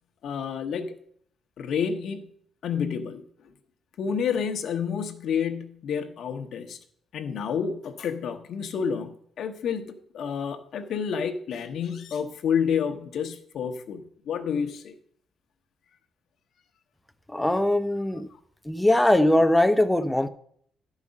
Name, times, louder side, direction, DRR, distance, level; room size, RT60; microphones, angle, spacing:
voice 1, 0.2-0.9 1.6-2.3 2.6-3.2 4.0-6.8 7.1-14.9, left 7 dB, 70° left, 0.9 m, -29 dB
voice 2, 17.3-18.3 18.7-20.3, left 1 dB, 10° left, 0.5 m, -21 dB
11.5 x 4.9 x 5.2 m
cardioid pair, 90°, 0 cm